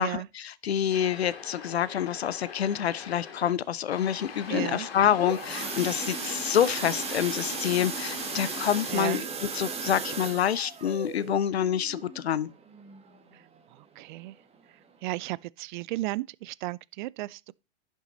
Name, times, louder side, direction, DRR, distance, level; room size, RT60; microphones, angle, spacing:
voice 1, 0.0-12.5, left 9 dB, 85° left, 0.7 m, -27 dB
sound 1, 0.9-3.5 3.9-8.9, left 6 dB, 65° left, 2.8 m, -42 dB
voice 2, 4.5-4.9 8.9-9.2 14.0-14.3 15.0-17.5, right 19 dB, 50° right, 0.5 m, -34 dB
sound 2, 4.9-13.6 14.0-14.3 14.5-14.6 15.1-15.2, right 5 dB, 20° right, 1.8 m, -36 dB
11.0 x 6.2 x 4.1 m
hypercardioid pair, 110°, 31 cm